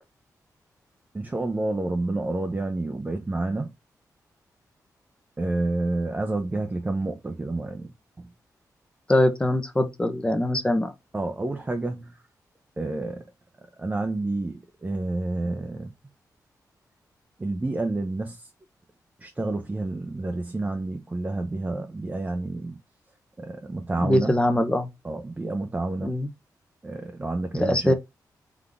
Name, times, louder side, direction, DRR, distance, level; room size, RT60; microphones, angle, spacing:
voice 1, 1.1-3.7 5.4-7.9 8.2-8.3 11.1-12.2 12.8-13.2 13.8-15.9 17.4-18.5 19.2-22.8 23.4-24.4 25.0-26.1 26.8-27.9, right 2 dB, 20° right, 0.7 m, -29 dB
voice 2, 9.1-10.9 24.0-24.9 26.0-26.3 27.6-27.9, left 1 dB, 15° left, 0.9 m, -22 dB
3.9 x 3.6 x 3.5 m
wide cardioid pair, 115°, 7 cm